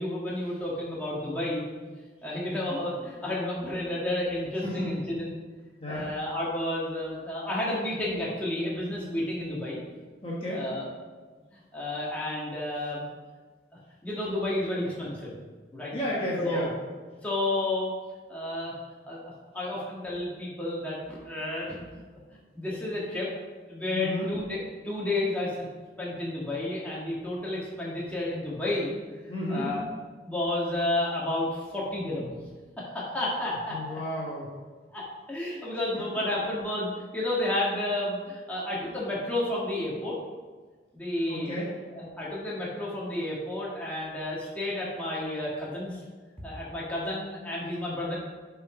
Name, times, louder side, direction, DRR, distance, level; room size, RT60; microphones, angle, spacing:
voice 1, 0.0-1.6 2.2-5.3 5.9-9.8 10.5-10.9 11.7-13.0 14.0-15.3 15.7-15.9 16.4-16.7 17.2-17.9 18.3-18.8 19.1-19.2 19.5-22.0 22.5-23.3 23.7-24.6 24.8-25.7 26.0-28.9 29.5-29.8 30.2-32.4 32.8-34.0 34.9-35.0 35.3-40.1 40.9-41.6 41.9-46.0 46.4-48.2, left 1 dB, 10° left, -7 dB, 1.7 m, -31 dB
voice 2, 4.6-5.0 5.8-6.1 10.2-10.7 15.9-16.7 23.9-24.3 29.3-29.7 33.7-34.5 35.9-36.0 41.3-41.7, left 1 dB, 30° left, -6 dB, 1.4 m, -32 dB
7.3 x 4.9 x 5.0 m, 1.4 s
head